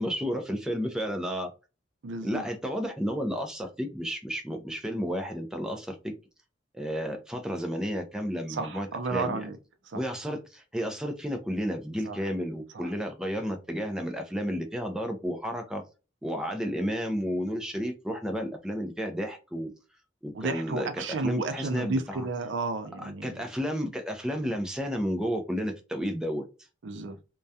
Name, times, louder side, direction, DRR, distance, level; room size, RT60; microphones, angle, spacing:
voice 1, 0.0-1.5 2.2-6.1 6.7-9.5 9.9-15.8 16.2-19.7 20.2-22.3 23.0-26.5, equal, 5° right, 0.4 m, -32 dB
voice 2, 2.0-2.5 8.5-9.6 9.9-10.0 12.0-12.2 12.7-12.9 20.3-23.3 26.8-27.2, right 3 dB, 80° right, 0.5 m, -32 dB
2.3 x 2.2 x 2.6 m
head